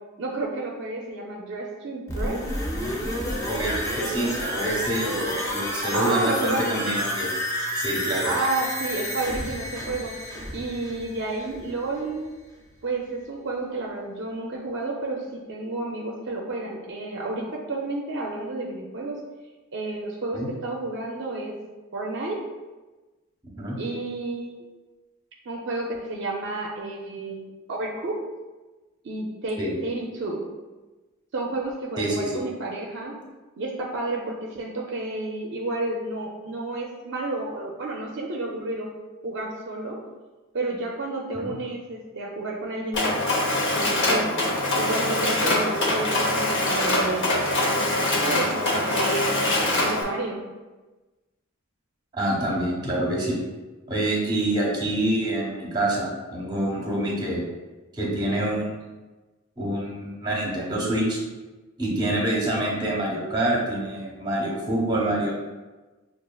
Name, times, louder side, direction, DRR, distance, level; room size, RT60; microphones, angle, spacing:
voice 1, 0.2-2.4 5.9-6.9 8.2-10.2 10.5-12.3 12.8-19.2 19.7-21.5 21.9-22.4 23.8-24.5 25.5-28.2 29.0-30.4 31.3-33.2 33.6-38.9 39.2-40.0 40.5-44.3 44.7-49.3 49.8-50.4, right 2 dB, 55° right, -1 dB, 0.5 m, -31 dB
sound 1, 2.1-11.8 12.1-12.2, equal, 15° left, 0.5 m, -30 dB
voice 2, 3.5-7.3 7.8-8.3 20.3-20.5 23.6-23.8 29.6-29.7 32.0-32.4 41.3-41.5 52.1-53.4 53.9-57.4 57.9-58.8 59.6-61.2 61.8-65.3, right 1 dB, 20° right, -3 dB, 0.9 m, -26 dB
Mechanisms, 42.9-50.0, left 1 dB, 60° left, 0.8 m, -23 dB
6.1 x 2.4 x 2.3 m, 1.2 s
head